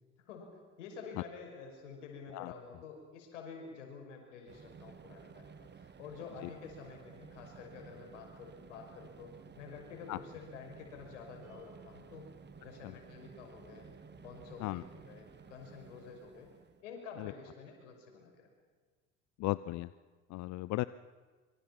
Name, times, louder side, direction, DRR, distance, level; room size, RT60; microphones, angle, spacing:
voice 1, 0.3-9.3 9.6-12.3 12.6-13.9 14.2-16.5 16.8-18.5, left 5 dB, 75° left, 2 dB, 5.8 m, -49 dB
sound 1, 4.5-16.8, right 6 dB, 30° right, 1.8 m, -54 dB
Piano, 11.4-14.7, right 2 dB, 45° right, 7.0 m, -66 dB
voice 2, 19.4-19.9 20.3-20.8, left 18 dB, 50° left, 17 dB, 0.6 m, -36 dB
26.0 x 24.5 x 6.0 m, 1.5 s
hypercardioid pair, 65°, 37 cm